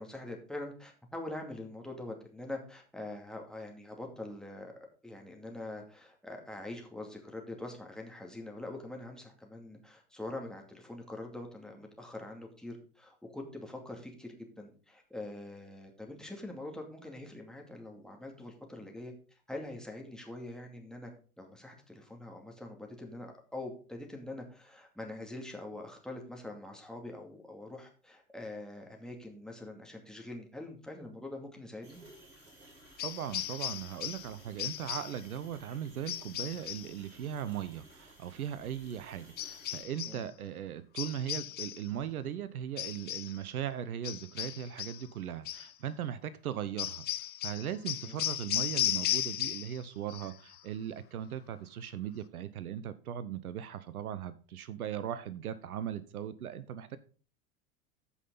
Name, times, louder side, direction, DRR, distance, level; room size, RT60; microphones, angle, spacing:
voice 1, 0.0-4.7 5.0-21.1 21.4-32.0 40.0-40.3 48.1-48.2, left 2 dB, ahead, 1 dB, 2.3 m, -44 dB
sound 1, 31.8-39.8, right 1 dB, 85° right, 3.8 m, -57 dB
sound 2, 33.0-34.3 34.6-35.2 36.1-36.9 39.4-40.2 41.0-41.9 42.8-43.4 44.0-45.1 45.5-45.7 46.8-49.8 50.1-50.6, left 13 dB, 25° left, 0.5 m, -36 dB
voice 2, 33.0-47.0 47.4-57.0, right 10 dB, 70° right, 14 dB, 0.8 m, -38 dB
14.5 x 5.6 x 3.9 m, 0.39 s
figure-of-eight pair, 85°, 45 cm